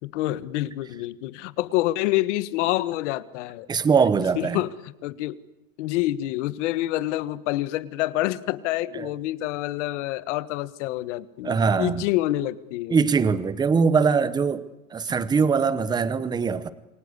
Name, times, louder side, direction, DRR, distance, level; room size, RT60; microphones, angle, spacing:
voice 1, 0.0-3.7 4.3-5.4 5.8-13.0 15.0-15.1, left 16 dB, 55° left, 15 dB, 1.6 m, -27 dB
voice 2, 3.7-4.6 8.9-9.1 11.4-12.0 12.9-14.7 14.9-16.7, right 5 dB, 10° right, 15 dB, 0.9 m, -22 dB
28.5 x 24.0 x 8.2 m, 0.91 s
supercardioid pair, 170°, 42 cm